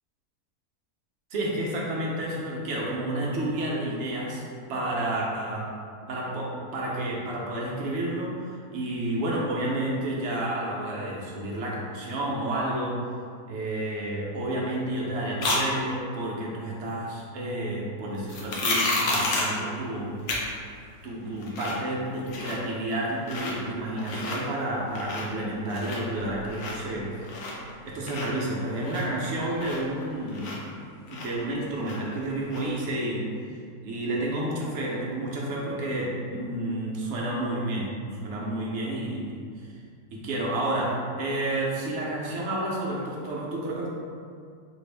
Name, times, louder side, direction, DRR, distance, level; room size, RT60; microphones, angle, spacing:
voice 1, 1.3-4.4 4.7-5.7 6.1-13.0 13.5-20.2 21.0-27.2 27.8-30.6 31.1-38.0 38.2-39.7 40.1-43.9, right 1 dB, 60° right, -4 dB, 0.8 m, -30 dB
sound 1, 15.4-15.6 18.3-19.6 20.3-20.4 20.8-20.9 21.3-21.8 22.1-22.7 23.2-23.5 23.9-24.4 24.8-25.4 25.7-27.7 28.0-30.8 31.1-32.2 32.5-32.6, left 2 dB, 60° left, 0.9 m, -30 dB
3.5 x 2.5 x 3.3 m, 2.3 s
omnidirectional pair, 1.6 m